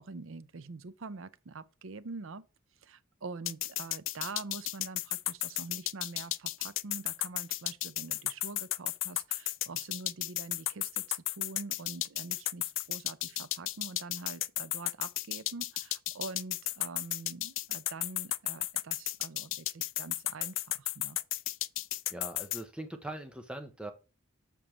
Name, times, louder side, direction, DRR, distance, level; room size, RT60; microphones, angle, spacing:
voice 1, 0.0-2.5 2.8-21.2, right 3 dB, 70° right, 0.6 m, -45 dB
sound 1, 3.5-22.6, left 16 dB, 65° left, 0.4 m, -33 dB
voice 2, 22.1-23.9, right 1 dB, 5° right, 0.7 m, -41 dB
7.3 x 6.9 x 3.1 m
head